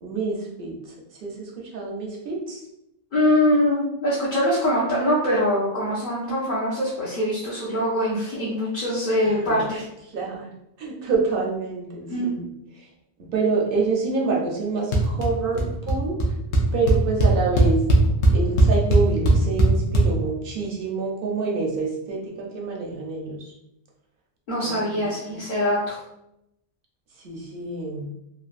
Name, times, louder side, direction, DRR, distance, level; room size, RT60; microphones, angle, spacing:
voice 1, 0.0-2.7 9.2-9.8 10.1-10.5 10.8-12.5 12.7-12.9 13.2-16.3 16.7-17.8 18.3-23.5 24.6-25.4 27.2-28.1, right 4 dB, 60° right, -2 dB, 0.8 m, -27 dB
voice 2, 3.1-9.8 12.1-12.3 24.5-26.0, left 1 dB, 50° left, -8 dB, 0.9 m, -23 dB
sound 1, 14.9-15.3 15.6-16.0 16.2-16.3 16.5-20.0, right 1 dB, 75° left, 0.9 m, -17 dB
3.2 x 2.3 x 2.4 m, 0.83 s
omnidirectional pair, 1.1 m